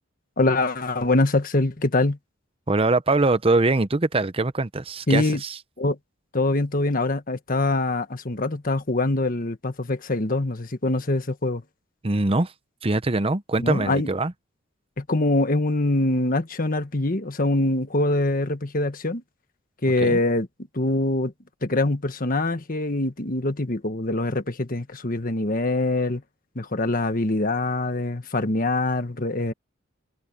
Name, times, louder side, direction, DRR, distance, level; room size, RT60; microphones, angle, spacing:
voice 1, 0.4-2.2 5.1-5.4 5.8-6.0 6.3-11.6 13.6-14.1 15.0-19.2 19.8-20.5 20.7-21.3 21.6-26.2 26.5-29.5, left 2 dB, 45° left, 1.5 m, -24 dB
voice 2, 2.7-5.6 12.0-12.5 12.8-14.3 20.0-20.2, right 2 dB, 30° right, 0.8 m, -22 dB
head